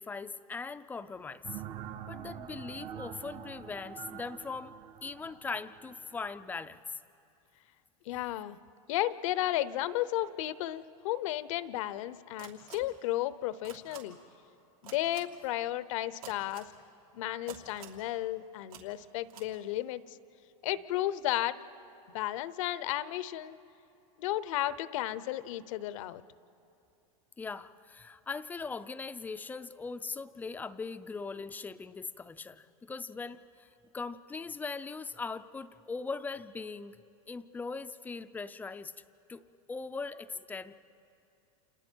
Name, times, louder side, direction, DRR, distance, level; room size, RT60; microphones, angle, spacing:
voice 1, 0.0-1.6 2.1-4.7 5.0-7.0 27.4-37.0 37.3-38.9 39.3-39.4 39.7-40.8, left 4 dB, 10° left, 11 dB, 0.4 m, -40 dB
sound 1, 1.4-6.8, right 10 dB, 30° right, 0.7 m, -45 dB
voice 2, 8.1-8.6 8.9-14.2 14.8-16.7 17.1-20.2 20.6-21.6 22.1-23.6 24.2-26.2, left 14 dB, 65° left, 16 dB, 0.8 m, -33 dB
sound 2, 12.4-12.8 13.6-14.0 14.8-15.2 16.2-16.7 17.5-18.0 18.7-18.8 19.3-19.4, right 11 dB, 90° right, 3.1 m, -47 dB
29.0 x 28.0 x 4.6 m, 2.8 s
supercardioid pair, 145°, 18 cm